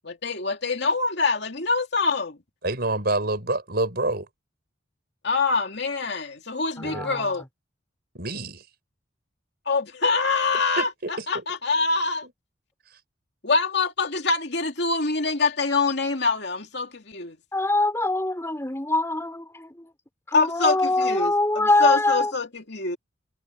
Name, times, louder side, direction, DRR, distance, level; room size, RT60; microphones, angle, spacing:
voice 1, 0.0-2.4 5.2-7.4 9.7-10.9 11.3-12.3 13.4-17.4 20.3-23.0, left 4 dB, 60° left, 2.7 m, -25 dB
voice 2, 2.6-4.3 6.8-7.1 8.1-8.6 10.8-11.4 12.2-12.3, right 2 dB, 55° right, 5.6 m, -27 dB
voice 3, 6.8-7.3 17.5-19.9 20.3-22.3, left 2 dB, 15° left, 4.2 m, -23 dB
head